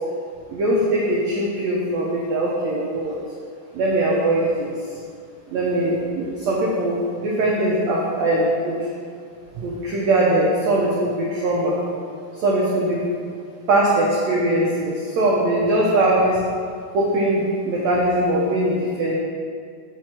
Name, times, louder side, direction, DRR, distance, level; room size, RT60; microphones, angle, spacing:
voice 1, 0.5-3.2 3.7-4.7 5.5-8.8 9.6-11.7 12.4-13.0 13.7-16.4 16.9-19.1, right 1 dB, 85° right, -4 dB, 1.5 m, -21 dB
7.1 x 6.2 x 4.4 m, 2.2 s
omnidirectional pair, 4.3 m